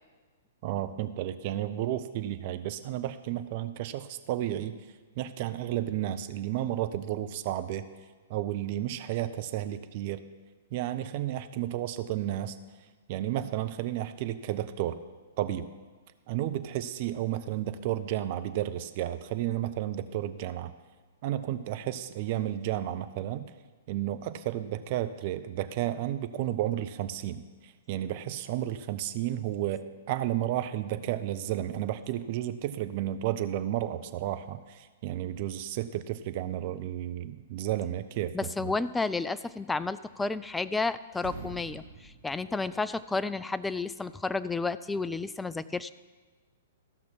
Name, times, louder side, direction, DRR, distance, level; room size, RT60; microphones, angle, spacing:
voice 1, 0.6-4.8 5.2-7.8 8.3-10.2 10.7-12.6 13.1-15.0 15.4-15.7 16.3-20.7 21.2-23.5 23.9-27.4 27.9-38.7, right 12 dB, 40° right, 11 dB, 0.6 m, -32 dB
voice 2, 38.3-45.9, left 3 dB, 5° left, 14 dB, 0.3 m, -31 dB
sound 1, 40.0-40.8 41.1-43.3, right 4 dB, 55° right, 1.4 m, -46 dB
14.5 x 5.9 x 5.8 m, 1.4 s
figure-of-eight pair, 110°, 0 cm